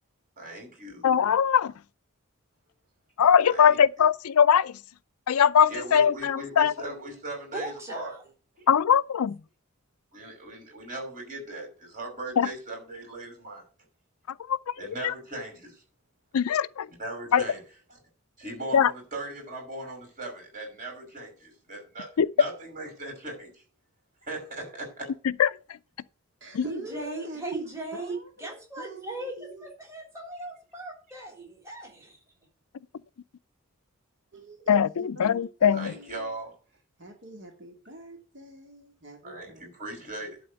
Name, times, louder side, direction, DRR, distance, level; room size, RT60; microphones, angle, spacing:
voice 1, 0.4-1.1 3.4-3.8 5.7-8.1 8.6-8.7 10.1-13.6 14.8-15.8 16.9-17.6 18.4-23.6 24.2-25.1 35.7-36.5 39.2-40.4, right 1 dB, 35° right, 5.5 m, -39 dB
voice 2, 1.0-1.7 3.2-4.8 5.3-6.7 8.7-9.4 12.4-12.5 14.5-14.7 15.0-15.1 16.3-16.9 17.3-17.4 18.7-18.9 22.2-22.3 25.4-25.5 26.5-26.6 34.7-35.9, left 7 dB, 85° left, 0.4 m, -21 dB
voice 3, 7.5-8.2 26.6-32.2, right 2 dB, 15° right, 3.3 m, -38 dB
voice 4, 26.4-29.7 34.3-36.3 37.0-39.7, right 1 dB, 55° right, 2.0 m, -44 dB
11.5 x 4.2 x 8.0 m
head